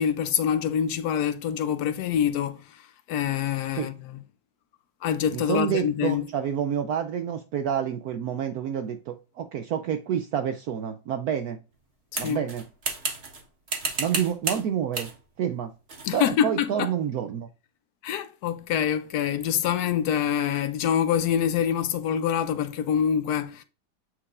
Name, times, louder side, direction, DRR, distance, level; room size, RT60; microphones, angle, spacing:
voice 1, 0.0-4.2 5.0-6.2 12.2-12.4 16.0-16.9 18.0-23.6, left 9 dB, 75° left, 0.9 m, -26 dB
voice 2, 5.3-11.6 12.2-12.6 14.0-15.1 15.4-15.7 16.1-17.5, right 9 dB, 80° right, 0.8 m, -28 dB
sound 1, 12.1-13.4 13.7-14.6 14.9-15.2 15.9-16.1, right 3 dB, 35° right, 1.4 m, -31 dB
8.6 x 4.6 x 2.5 m
omnidirectional pair, 2.2 m